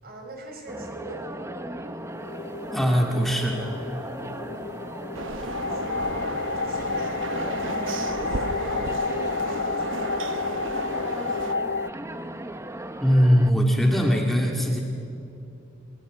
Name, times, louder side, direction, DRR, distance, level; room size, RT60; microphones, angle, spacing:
voice 1, 0.0-1.9 5.0-11.1, right 1 dB, 50° right, 2 dB, 5.3 m, -43 dB
sound 1, 0.7-13.5, right 1 dB, 15° right, 1.0 m, -38 dB
sound 2, 1.9-11.9, left 4 dB, 60° left, 0.6 m, -31 dB
voice 2, 2.7-3.6 5.4-5.6 13.0-14.8, equal, ahead, 0 dB, 2.4 m, -21 dB
sound 3, 5.1-11.5, right 3 dB, 75° right, 1.1 m, -34 dB
30.0 x 20.5 x 9.5 m, 2.7 s
head